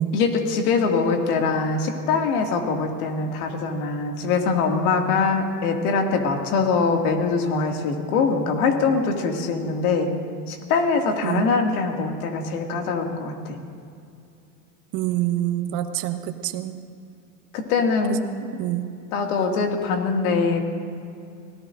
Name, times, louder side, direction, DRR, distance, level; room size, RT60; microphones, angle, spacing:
voice 1, 0.1-10.2 10.5-13.6 17.5-18.3 19.1-20.6, left 4 dB, 70° left, 3 dB, 2.4 m, -23 dB
voice 2, 14.9-16.8 18.6-18.9, right 13 dB, 50° right, 7 dB, 1.3 m, -26 dB
25.0 x 18.5 x 2.6 m, 2.5 s
supercardioid pair, 120°, 47 cm